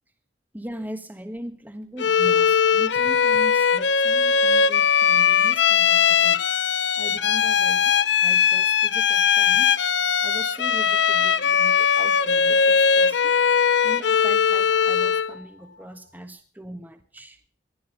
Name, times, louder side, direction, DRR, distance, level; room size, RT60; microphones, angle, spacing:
voice 1, 0.5-8.0 8.2-9.8 10.2-13.4 13.8-17.4, right 1 dB, 10° right, 8 dB, 1.3 m, -40 dB
Bowed string instrument, 2.0-15.4, left 7 dB, 75° left, 0.7 m, -20 dB
18.5 x 12.0 x 5.6 m, 0.43 s
head